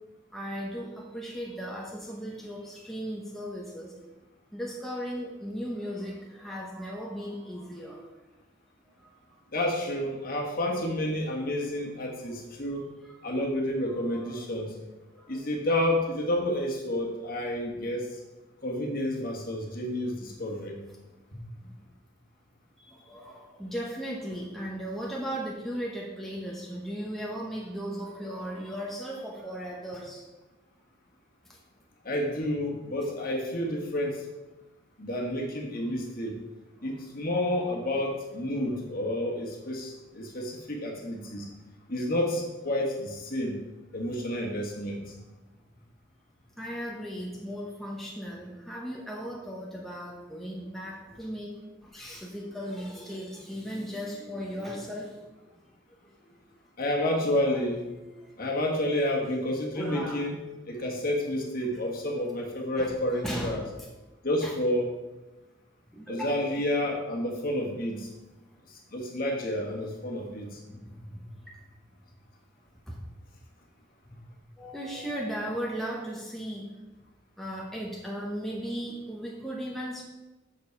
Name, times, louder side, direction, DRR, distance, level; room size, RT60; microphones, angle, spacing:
voice 1, 0.3-3.9 4.5-8.1 9.0-9.1 13.0-13.1 13.9-14.3 15.1-15.4 21.6-21.7 22.8-30.2 31.5-31.6 36.8-37.0 37.5-37.6 38.6-38.8 46.6-51.5 51.8-55.2 55.5-55.6 57.5-57.6 57.9-58.3 59.8-60.2 61.7-61.8 62.8-63.0 63.2-63.6 64.4-64.6 65.9-66.4 70.7-71.6 72.9-73.0 74.6-76.7 77.4-80.0, equal, ahead, -3 dB, 1.1 m, -37 dB
voice 2, 9.5-12.8 13.2-14.7 15.3-18.1 18.6-20.8 21.3-21.4 32.0-34.2 35.0-36.4 36.8-41.5 41.9-43.6 43.9-45.1 56.8-57.8 58.4-60.4 60.7-63.6 64.2-64.9 66.1-68.1 68.7-70.6, left 1 dB, 45° left, 0 dB, 1.6 m, -30 dB
8.3 x 6.6 x 4.7 m, 1.1 s
head